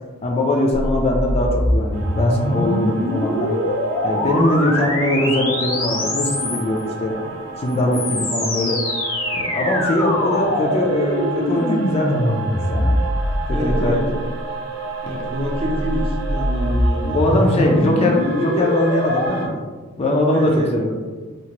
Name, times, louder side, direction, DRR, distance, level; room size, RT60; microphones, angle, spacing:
voice 1, 0.2-3.6 4.0-7.3 7.6-8.8 9.3-13.0 13.2-14.2 15.1-15.2 17.1-19.6 20.0-21.0, left 1 dB, 30° left, -1 dB, 0.3 m, -21 dB
sound 1, 0.7-6.8 7.7-14.3 15.4-19.3, left 1 dB, 65° left, 0.7 m, -23 dB
sound 2, 1.9-19.5, right 4 dB, 75° right, 0.5 m, -33 dB
voice 2, 13.5-14.1 15.0-17.2 20.3-20.7, equal, 25° right, -2 dB, 0.6 m, -26 dB
2.8 x 2.5 x 2.9 m, 1.4 s
head